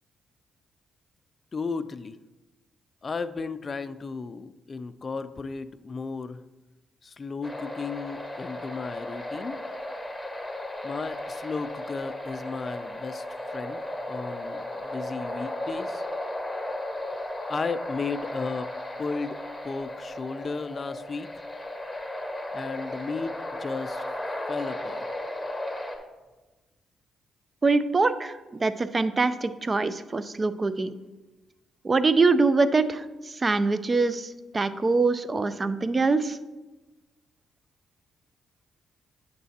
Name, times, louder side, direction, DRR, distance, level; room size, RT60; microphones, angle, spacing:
voice 1, 1.5-2.2 3.0-6.4 7.0-9.6 10.8-13.8 14.1-16.0 17.5-18.7 19.0-21.5 22.5-24.0 24.5-25.0, left 4 dB, 40° left, 12 dB, 0.4 m, -34 dB
sound 1, 7.4-26.0, left 1 dB, 10° left, 1.3 m, -35 dB
voice 2, 27.6-30.9 31.8-33.0 33.3-36.4, right 3 dB, 35° right, 13 dB, 0.5 m, -24 dB
9.0 x 6.6 x 2.8 m, 1.1 s
supercardioid pair, 65°, 0 cm